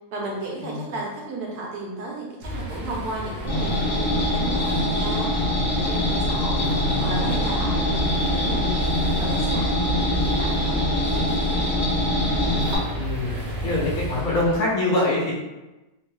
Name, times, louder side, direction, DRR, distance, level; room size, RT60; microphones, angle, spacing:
voice 1, 0.1-5.3 5.7-6.7 7.0-8.9 9.2-11.6, right 2 dB, 85° right, -2 dB, 1.3 m, -34 dB
sound 1, 2.4-14.6, right 1 dB, 45° right, 0.7 m, -31 dB
sound 2, 3.5-12.8, left 1 dB, 15° left, 0.6 m, -24 dB
voice 2, 6.6-7.2 12.9-13.4 13.6-15.3, left 2 dB, 65° left, -5 dB, 1.1 m, -25 dB
3.2 x 2.2 x 3.0 m, 1.1 s
omnidirectional pair, 1.6 m